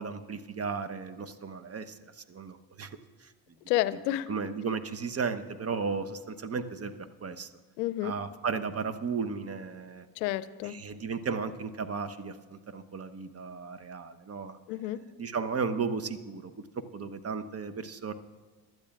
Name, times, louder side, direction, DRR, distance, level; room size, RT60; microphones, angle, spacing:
voice 1, 0.0-2.9 3.2-3.3 4.3-6.9 7.2-7.5 8.0-10.1 10.6-14.6 15.2-18.1, right 5 dB, 30° right, 10 dB, 1.0 m, -35 dB
voice 2, 3.7-4.3 7.8-8.1 10.2-10.8 14.7-15.0, left 14 dB, 85° left, 16 dB, 0.6 m, -30 dB
23.5 x 12.5 x 2.4 m, 1.4 s
hypercardioid pair, 65°, 49 cm